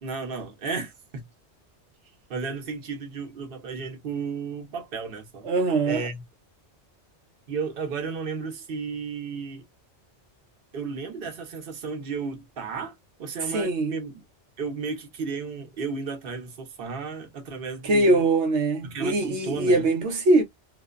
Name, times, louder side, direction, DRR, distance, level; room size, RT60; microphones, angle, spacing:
voice 1, 0.0-1.2 2.3-5.5 5.8-6.2 7.5-9.6 10.7-14.2 14.6-18.2 18.8-19.9, right 5 dB, 55° right, 0.9 m, -33 dB
voice 2, 5.4-6.0 13.5-13.9 17.8-20.4, right 2 dB, 80° right, 1.0 m, -22 dB
2.6 x 2.1 x 2.3 m
omnidirectional pair, 1.2 m